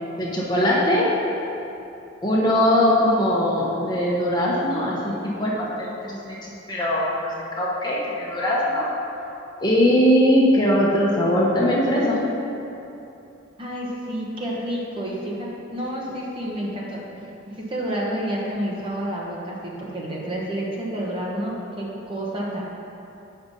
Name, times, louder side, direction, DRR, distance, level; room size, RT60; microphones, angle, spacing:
voice 1, 0.2-1.1 2.2-8.9 9.6-12.2, equal, 20° left, -5 dB, 1.1 m, -21 dB
voice 2, 13.6-22.6, right 1 dB, 25° right, -4 dB, 1.2 m, -29 dB
7.8 x 5.4 x 5.4 m, 2.8 s
head